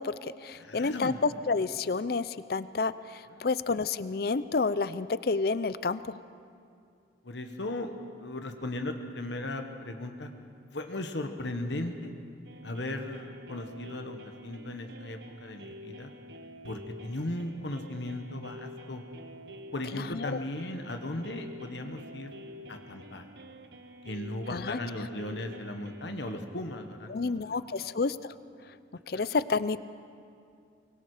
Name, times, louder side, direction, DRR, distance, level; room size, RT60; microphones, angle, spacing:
voice 1, 0.0-6.2 19.9-20.4 24.5-24.8 27.1-28.3 29.1-29.8, left 4 dB, 55° left, 15 dB, 0.5 m, -30 dB
voice 2, 0.5-1.2 3.3-3.5 7.2-10.3 10.7-12.1 12.6-16.1 16.6-19.0 19.7-22.3 22.7-23.2 24.0-27.9 29.1-29.2, left 1 dB, 75° left, 5 dB, 1.4 m, -37 dB
sound 1, 12.4-26.4, equal, 65° right, 1.1 m, -48 dB
24.0 x 23.0 x 5.0 m, 2.4 s
head